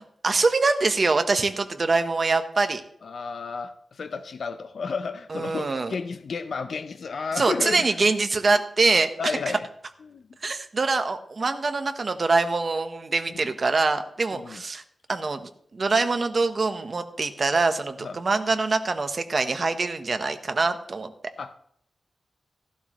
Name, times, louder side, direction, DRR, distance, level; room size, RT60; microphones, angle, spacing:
voice 1, 0.0-2.8 5.3-5.9 7.4-9.3 10.4-14.8 15.1-21.1, right 3 dB, 40° right, 7 dB, 1.1 m, -24 dB
voice 2, 3.0-7.9 9.2-9.6 10.1-10.2 13.3-13.4 14.3-14.6 18.0-18.1 21.4-21.5, left 5 dB, 60° left, 9 dB, 0.6 m, -32 dB
16.0 x 11.5 x 3.1 m, 0.67 s
wide cardioid pair, 130°, 0 cm